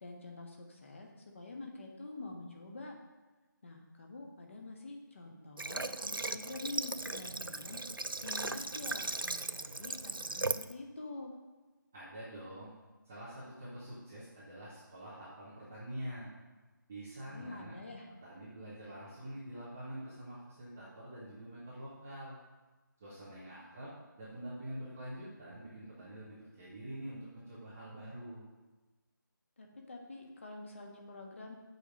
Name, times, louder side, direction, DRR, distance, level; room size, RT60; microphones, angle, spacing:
voice 1, 0.0-3.0 3.6-7.8 8.2-11.3 17.3-18.1 29.6-31.6, left 2 dB, 35° left, 1 dB, 1.4 m, -46 dB
Water / Water tap faucet, 5.6-10.7, right 2 dB, 85° right, 0.4 m, -38 dB
voice 2, 11.9-12.7 13.0-16.3 16.9-17.8 18.2-22.4 23.0-23.9 24.2-28.5, right 1 dB, 5° right, -10 dB, 0.4 m, -46 dB
6.9 x 5.1 x 7.2 m, 1.2 s
figure-of-eight pair, 160°, 11 cm